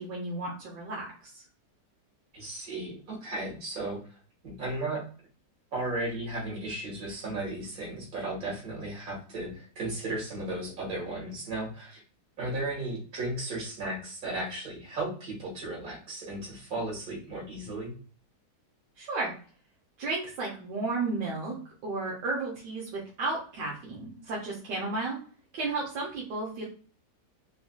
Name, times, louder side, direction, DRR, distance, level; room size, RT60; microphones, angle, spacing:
voice 1, 0.0-1.4 19.0-19.3 20.0-21.6 21.8-25.2 25.5-26.6, right 3 dB, 80° right, -4 dB, 1.5 m, -33 dB
voice 2, 2.3-4.0 4.4-5.0 5.7-12.0 12.4-17.9, right 2 dB, 55° right, -4 dB, 2.1 m, -35 dB
4.1 x 2.5 x 2.2 m, 0.40 s
omnidirectional pair, 1.8 m